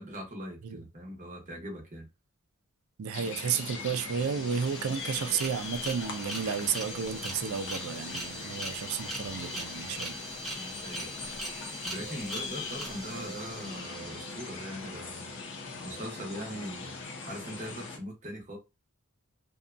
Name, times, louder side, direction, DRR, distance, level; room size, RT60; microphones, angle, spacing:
voice 1, 0.0-2.1 4.9-5.0 10.6-11.3 11.8-15.3 15.8-16.9 17.3-18.6, equal, 35° right, 0.9 m, -41 dB
voice 2, 3.0-10.2, right 7 dB, 70° right, 0.4 m, -32 dB
sound 1, 3.1-18.0, left 4 dB, 55° left, 0.6 m, -41 dB
sound 2, 3.7-3.8 3.9-14.8, right 1 dB, ahead, 1.0 m, -41 dB
2.6 x 2.2 x 2.4 m
head